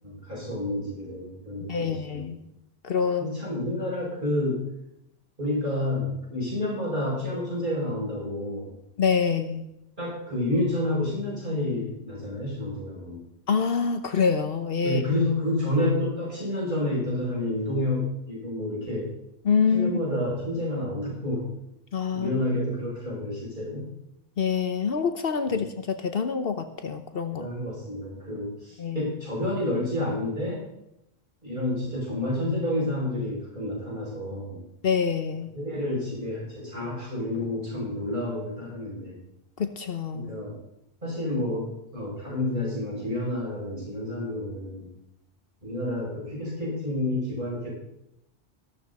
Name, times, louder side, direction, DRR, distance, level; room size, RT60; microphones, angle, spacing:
voice 1, 0.0-2.3 3.2-4.6 5.4-8.7 10.0-13.2 14.8-19.1 19.7-21.4 22.1-23.9 25.5-25.6 27.3-30.6 31.4-34.6 35.5-39.2 40.1-40.6 41.0-44.9 45.6-47.7, left 1 dB, 50° right, -5 dB, 7.0 m, -29 dB
voice 2, 1.7-2.4 2.8-3.3 9.0-9.7 13.5-15.0 19.4-19.9 21.9-22.3 24.4-27.5 28.8-29.0 34.8-35.5 39.6-40.3, left 6 dB, 65° left, 8 dB, 1.1 m, -26 dB
14.5 x 13.0 x 4.2 m, 0.83 s
omnidirectional pair, 1.1 m